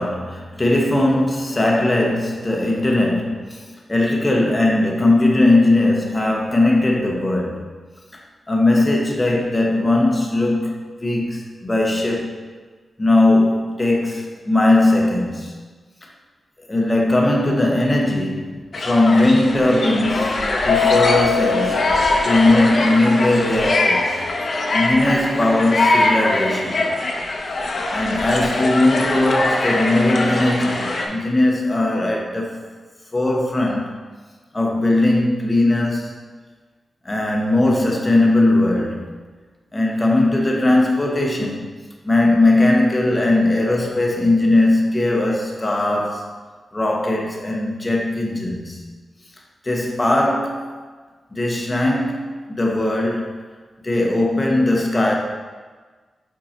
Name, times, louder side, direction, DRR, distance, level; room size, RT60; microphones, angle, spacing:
voice 1, 0.0-7.6 8.5-12.4 13.0-15.6 16.6-24.2 24.7-26.9 27.9-32.6 33.1-33.9 34.5-36.1 37.0-39.1 39.7-41.7 42.0-46.3 46.7-48.8 49.6-50.7 51.3-53.3 53.8-55.1, left 2 dB, 20° left, -1 dB, 1.0 m, -19 dB
sound 1, 18.7-31.1, left 2 dB, 50° left, 0.8 m, -22 dB
Keyboard (musical), 20.7-23.2, left 7 dB, 85° left, 0.3 m, -23 dB
5.3 x 4.7 x 4.3 m, 1.4 s
wide cardioid pair, 110°, 0 cm